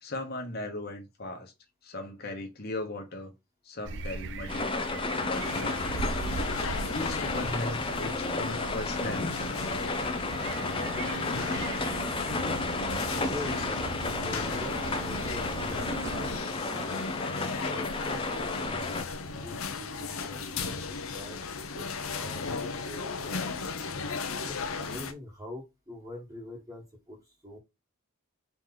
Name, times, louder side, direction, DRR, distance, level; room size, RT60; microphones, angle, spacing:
voice 1, 0.0-1.5 1.8-3.3 3.6-6.2 6.9-9.6, left 2 dB, 45° left, 1.2 m, -38 dB
sound 1, 3.8-16.4, right 3 dB, 55° right, 0.4 m, -39 dB
sound 2, 4.5-19.0, left 3 dB, 25° left, 0.6 m, -33 dB
sound 3, 5.3-25.1, left 4 dB, 70° left, 0.7 m, -36 dB
voice 2, 13.2-17.0 17.6-18.9 19.4-21.5 21.7-23.6 24.4-27.6, left 1 dB, 15° right, 1.3 m, -44 dB
4.1 x 3.3 x 3.8 m
head